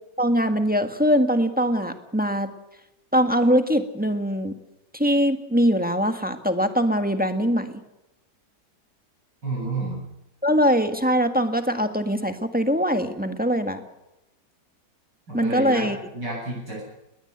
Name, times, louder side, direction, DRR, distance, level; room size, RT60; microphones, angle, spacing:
voice 1, 0.2-2.5 3.1-4.5 4.9-7.7 10.4-13.8 15.3-16.0, equal, 5° right, 6 dB, 1.4 m, -22 dB
voice 2, 9.4-10.0 15.3-16.8, right 2 dB, 90° right, -3 dB, 8.6 m, -30 dB
20.5 x 19.5 x 8.1 m, 0.92 s
omnidirectional pair, 1.9 m